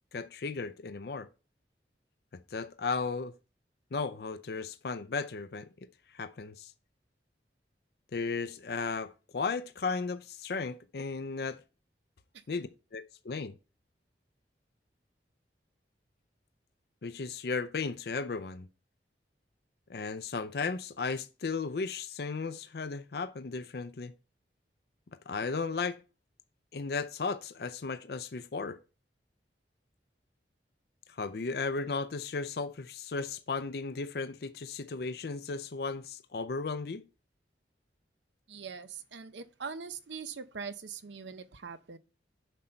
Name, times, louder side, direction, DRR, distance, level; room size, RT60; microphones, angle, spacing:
voice 1, 0.1-1.3 2.3-3.3 3.9-6.7 8.1-11.6 12.5-13.5 17.0-18.7 19.9-24.1 25.1-26.0 26.7-28.8 31.1-37.0, left 4 dB, 60° left, 0.5 m, -35 dB
voice 2, 38.5-42.0, right 5 dB, 85° right, 0.7 m, -42 dB
7.5 x 5.4 x 4.4 m
head